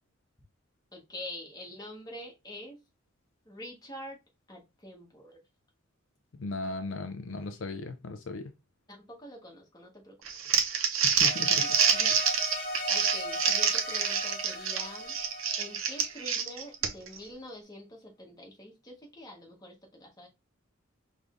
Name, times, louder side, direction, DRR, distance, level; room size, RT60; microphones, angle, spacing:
voice 1, 0.9-2.8 3.5-4.2 4.5-5.4 8.9-10.2 11.6-12.1 12.9-15.1 15.6-20.3, left 1 dB, 20° left, 1.3 m, -45 dB
voice 2, 6.4-8.5 11.0-11.6, left 2 dB, 65° left, 0.5 m, -37 dB
Crumpling crinkling, 10.3-17.2, right 7 dB, 75° right, 0.7 m, -27 dB
sound 1, 11.1-16.4, left 1 dB, 45° left, 1.2 m, -38 dB
4.8 x 3.3 x 2.6 m
head